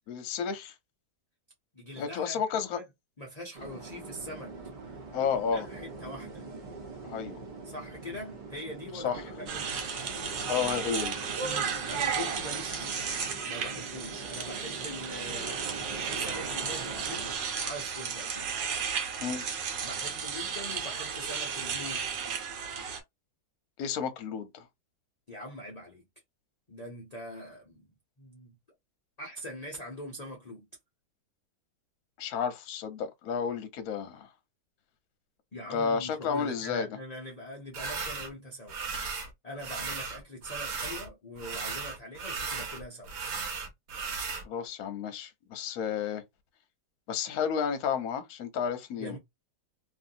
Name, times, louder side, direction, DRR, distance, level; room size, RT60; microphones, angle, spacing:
voice 1, 0.1-0.7 2.0-2.8 5.1-5.7 7.0-7.4 8.9-9.2 10.5-11.2 19.2-19.4 23.8-24.6 32.2-34.3 35.7-36.9 44.3-46.2 47.1-49.2, left 7 dB, 65° left, 1.0 m, -31 dB
voice 2, 1.7-2.8 3.2-4.6 5.5-6.4 7.6-9.7 11.4-13.0 13.4-15.6 16.0-18.5 19.8-22.1 25.3-26.0 26.7-27.9 28.2-28.6 29.2-30.7 35.5-38.8 39.4-43.1 49.0-49.2, left 1 dB, 50° left, 0.5 m, -43 dB
sound 1, 3.5-17.4, right 3 dB, 40° right, 0.7 m, -43 dB
sound 2, 9.5-23.0, right 6 dB, 85° right, 1.6 m, -34 dB
sound 3, 37.7-38.3 38.7-39.3 39.6-41.1 41.4-44.4, right 5 dB, 60° right, 1.3 m, -36 dB
3.0 x 2.5 x 2.6 m
omnidirectional pair, 1.9 m